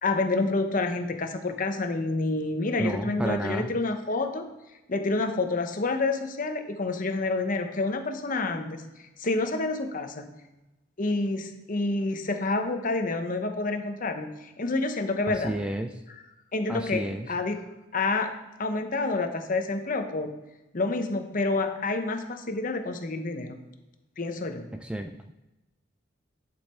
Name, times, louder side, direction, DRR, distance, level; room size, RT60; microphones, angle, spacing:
voice 1, 0.0-4.5 4.9-8.8 9.2-10.3 11.0-15.5 16.5-17.6 17.9-18.3 18.6-20.3 20.7-23.6 24.2-24.7, left 3 dB, 45° left, 6 dB, 0.9 m, -28 dB
voice 2, 2.8-3.7 15.3-15.9 16.7-17.3 24.7-25.2, right 1 dB, 5° right, 6 dB, 0.3 m, -31 dB
10.5 x 5.4 x 4.4 m, 1.0 s
head